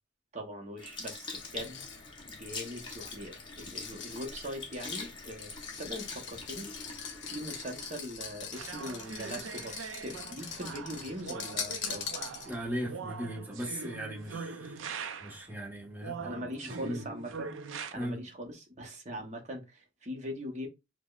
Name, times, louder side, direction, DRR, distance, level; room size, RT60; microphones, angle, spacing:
voice 1, 0.3-1.9 2.3-6.7 7.3-12.1 16.2-17.6 17.9-20.7, equal, 35° right, 0.7 m, -41 dB
Sink (filling or washing) / Liquid, 0.8-9.4 10.0-10.1, left 3 dB, 25° left, 0.7 m, -44 dB
sound 1, 1.4-12.7, left 6 dB, 65° left, 0.6 m, -43 dB
sound 2, 8.5-15.5 16.0-17.9, right 5 dB, 85° right, 0.4 m, -42 dB
voice 2, 12.4-14.8 15.2-17.0 17.9-18.2, equal, 10° right, 1.2 m, -38 dB
4.8 x 2.1 x 2.3 m
head